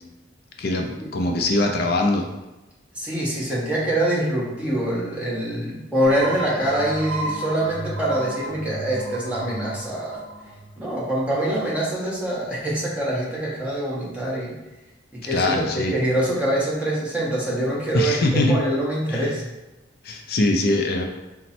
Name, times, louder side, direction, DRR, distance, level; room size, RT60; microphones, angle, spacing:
voice 1, 0.6-2.3 15.3-15.9 17.9-18.6 19.1-19.3 20.0-21.0, left 2 dB, 55° left, 3 dB, 0.4 m, -22 dB
voice 2, 2.9-10.2 10.8-14.6 15.1-19.4, right 1 dB, 5° right, -6 dB, 0.9 m, -25 dB
sound 1, 6.0-11.5, right 2 dB, 85° right, 0.7 m, -33 dB
4.2 x 2.1 x 4.2 m, 1.1 s
head